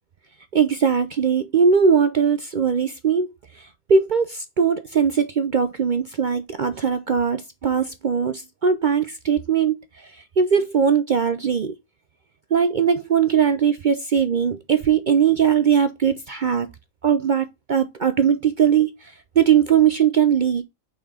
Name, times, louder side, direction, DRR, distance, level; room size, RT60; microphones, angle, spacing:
voice 1, 0.5-10.1 10.4-11.7 12.5-16.7 17.0-20.6, right 7 dB, 70° right, 0.4 m, -20 dB
5.7 x 4.4 x 4.9 m
omnidirectional pair, 1.5 m